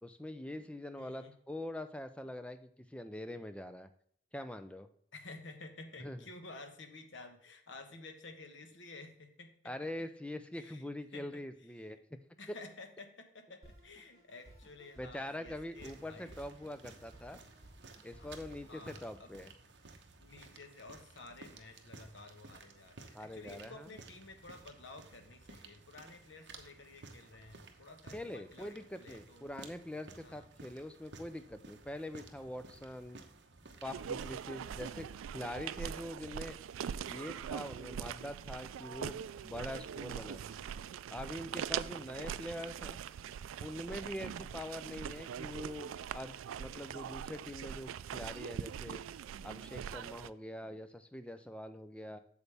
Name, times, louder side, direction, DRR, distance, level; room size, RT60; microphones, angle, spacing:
voice 1, 0.0-3.9 4.3-4.9 6.0-6.2 9.6-12.0 12.5-12.6 15.0-17.4 18.0-19.5 23.1-23.9 28.1-33.2 33.8-35.1 35.3-36.6 37.1-40.6 41.1-43.0 43.6-49.0 49.4-52.2, left 1 dB, 5° left, 10 dB, 0.4 m, -44 dB
voice 2, 1.0-1.3 5.1-9.8 10.5-10.8 11.1-11.4 11.8-11.9 12.4-16.3 18.2-18.3 18.7-19.3 19.8-29.5 30.2-30.5 34.7-35.0 41.9-42.1 44.4-44.6, left 3 dB, 70° left, 6 dB, 1.2 m, -52 dB
Drum kit, 13.6-19.0, right 1 dB, 15° right, 4.0 m, -58 dB
sound 1, 15.7-35.1, right 3 dB, 60° right, 0.9 m, -55 dB
sound 2, 33.8-50.3, right 8 dB, 85° right, 0.3 m, -42 dB
8.2 x 7.0 x 3.4 m, 0.64 s
head